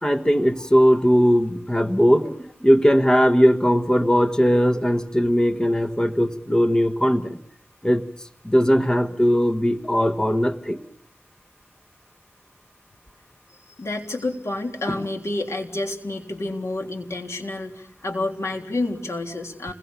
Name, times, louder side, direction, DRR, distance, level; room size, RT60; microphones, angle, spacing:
voice 1, 0.0-7.4 7.8-8.1 8.4-10.8 14.9-15.0, equal, 15° left, 1.5 m, -19 dB
voice 2, 13.8-19.7, left 2 dB, 85° left, 3.5 m, -29 dB
29.5 x 22.0 x 7.0 m
wide cardioid pair, 80°, 5 cm